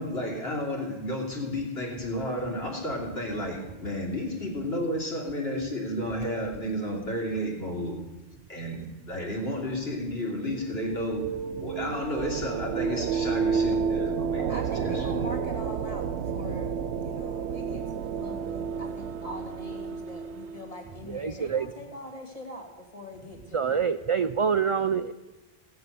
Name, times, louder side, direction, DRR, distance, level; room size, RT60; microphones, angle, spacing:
voice 1, 0.0-8.0 8.5-11.3 11.6-14.4 14.7-15.2, left 1 dB, 70° left, -2 dB, 3.2 m, -32 dB
sound 1, 10.4-20.9, right 6 dB, 80° right, 0.9 m, -31 dB
voice 2, 14.5-23.8, left 1 dB, 35° left, 1 dB, 2.4 m, -42 dB
voice 3, 21.1-21.7 23.5-25.1, right 6 dB, 55° right, 11 dB, 0.3 m, -26 dB
17.5 x 7.9 x 6.8 m, 1.1 s
omnidirectional pair, 1.1 m